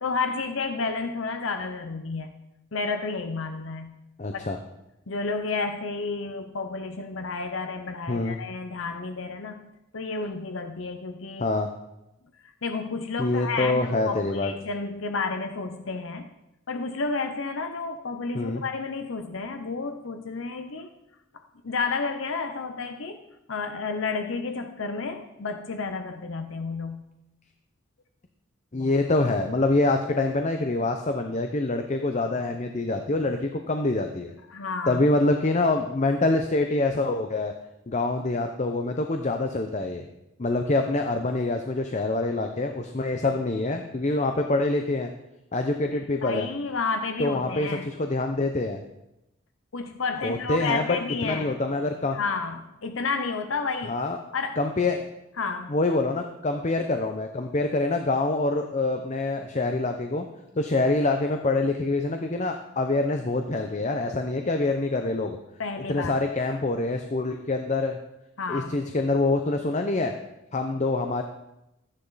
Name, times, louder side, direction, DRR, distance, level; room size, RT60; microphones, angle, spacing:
voice 1, 0.0-2.4 2.7-3.9 4.3-4.4 5.1-9.6 9.9-11.5 12.6-16.3 16.7-20.9 21.6-23.2 23.5-27.0 34.5-35.0 46.2-47.9 49.7-51.6 52.1-54.0 54.3-54.6 55.4-55.8 65.6-66.2 68.4-68.8, left 4 dB, 70° left, 7 dB, 0.8 m, -31 dB
voice 2, 4.2-4.6 8.1-8.4 11.4-11.7 13.2-14.5 18.3-18.6 28.7-34.3 34.9-37.5 37.9-40.1 40.4-45.1 45.5-46.5 47.2-48.8 50.2-50.9 51.2-52.2 53.9-54.2 54.6-55.0 55.7-60.3 60.6-65.4 65.9-68.0 68.5-70.2 70.5-71.2, left 2 dB, 35° left, 5 dB, 0.7 m, -25 dB
13.5 x 9.9 x 4.1 m, 0.90 s
head